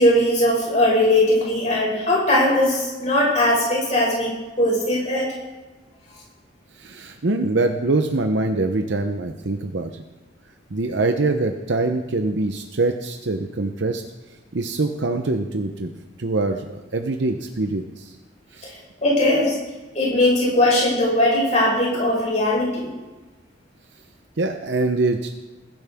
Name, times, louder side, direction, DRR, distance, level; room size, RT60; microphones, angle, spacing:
voice 1, 0.0-5.3 18.6-19.6 19.9-22.9, left 1 dB, 35° left, -4 dB, 5.8 m, -19 dB
voice 2, 6.8-10.0 10.7-14.0 14.5-15.9 16.2-18.1 18.5-18.7 24.4-25.4, right 2 dB, 65° right, 5 dB, 0.8 m, -24 dB
20.5 x 10.5 x 3.6 m, 1.2 s
head